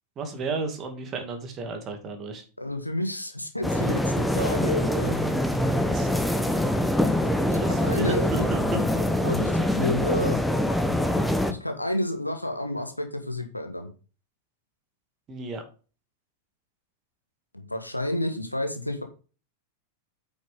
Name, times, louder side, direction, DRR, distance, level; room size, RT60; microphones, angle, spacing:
voice 1, 0.2-2.4 5.9-6.1 7.3-8.8 15.3-15.6, right 3 dB, 30° right, 4 dB, 2.5 m, -33 dB
voice 2, 2.6-5.4 7.2-8.3 9.0-10.4 11.5-13.9 17.5-19.0, left 1 dB, 85° left, 6 dB, 1.6 m, -30 dB
sound 1, 3.6-11.5, left 1 dB, ahead, 1.0 m, -24 dB
8.6 x 6.3 x 3.7 m, 0.35 s
figure-of-eight pair, 90°, 0 cm